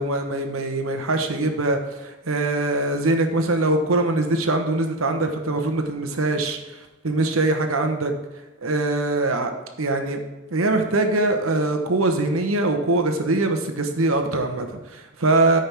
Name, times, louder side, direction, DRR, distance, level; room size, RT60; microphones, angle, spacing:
voice 1, 0.0-8.1 8.6-9.5 9.8-10.2 10.5-15.6, right 2 dB, 80° right, 6 dB, 1.1 m, -22 dB
13.5 x 5.4 x 3.5 m, 1.2 s
head